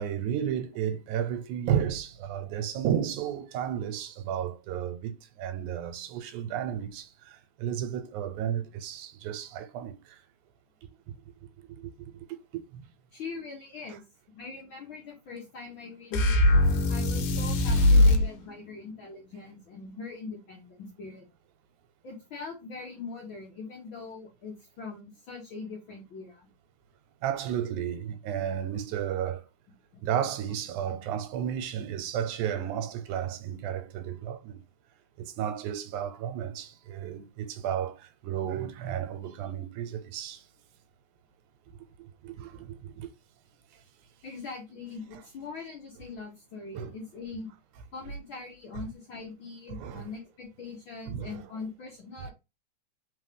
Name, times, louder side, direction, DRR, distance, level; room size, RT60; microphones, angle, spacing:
voice 1, 0.0-10.2 11.6-11.9 12.5-12.8 17.9-18.1 27.2-29.4 30.0-34.6 35.2-40.4 42.0-43.1 46.8-46.9 49.7-50.0 51.1-51.4, right 9 dB, 90° right, 2.1 m, -33 dB
voice 2, 13.1-14.0 14.3-16.4 16.9-21.3 22.0-26.5 29.9-30.0 44.2-47.5 47.9-52.3, left 4 dB, 60° left, 1.3 m, -42 dB
sound 1, 16.1-18.3, left 1 dB, 85° left, 2.3 m, -21 dB
4.0 x 3.8 x 3.3 m
omnidirectional pair, 3.5 m